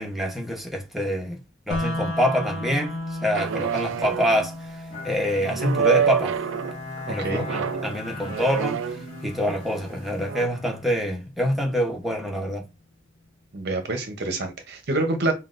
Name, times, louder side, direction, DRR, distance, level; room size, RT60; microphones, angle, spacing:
voice 1, 0.0-1.4 1.7-6.4 7.1-9.0 9.2-12.6, equal, ahead, 0.8 m, -26 dB
sound 1, 1.7-11.7, left 1 dB, 65° left, 0.7 m, -36 dB
sound 2, 3.3-4.5 5.4-6.8 7.3-9.3 10.2-10.5, right 7 dB, 70° right, 0.3 m, -27 dB
Bowed string instrument, 4.9-11.6, left 2 dB, 35° left, 0.8 m, -40 dB
voice 2, 7.1-7.5 13.5-15.3, right 2 dB, 55° right, 0.7 m, -27 dB
5.7 x 2.3 x 2.5 m
head